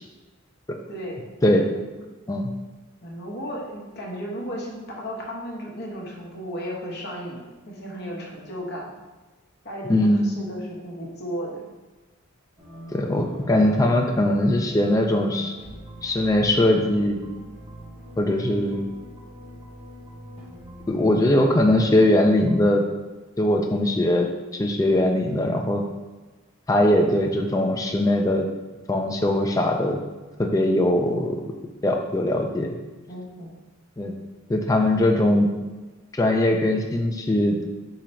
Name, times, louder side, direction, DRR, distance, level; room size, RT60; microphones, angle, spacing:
voice 1, 0.9-1.2 1.5-1.7 3.0-8.9 9.6-11.6 33.1-33.5, equal, 50° left, -3 dB, 1.0 m, -34 dB
voice 2, 9.9-10.3 12.9-15.5 16.0-17.2 18.2-18.8 20.9-22.8 23.4-25.8 26.7-28.5 28.9-30.0 30.4-31.5 31.8-32.8 34.0-34.1 34.5-35.5 36.2-37.6, left 1 dB, 15° left, 2 dB, 0.3 m, -21 dB
sound 1, 12.6-22.7, equal, 25° right, 1.0 m, -43 dB
3.8 x 2.9 x 4.3 m, 1.2 s
head